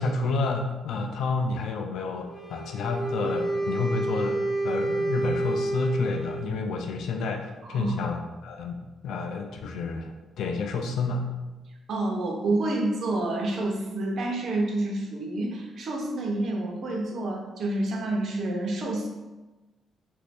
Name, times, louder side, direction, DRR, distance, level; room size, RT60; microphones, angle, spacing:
voice 1, 0.0-11.3, left 3 dB, 75° left, 4 dB, 0.4 m, -30 dB
Wind instrument woodwind instrument, 2.2-6.6, right 2 dB, 5° left, 1.4 m, -29 dB
voice 2, 7.6-7.9 11.9-19.1, right 2 dB, 55° right, 0 dB, 0.7 m, -28 dB
2.8 x 2.6 x 3.4 m, 1.1 s
cardioid pair, 120°, 0 cm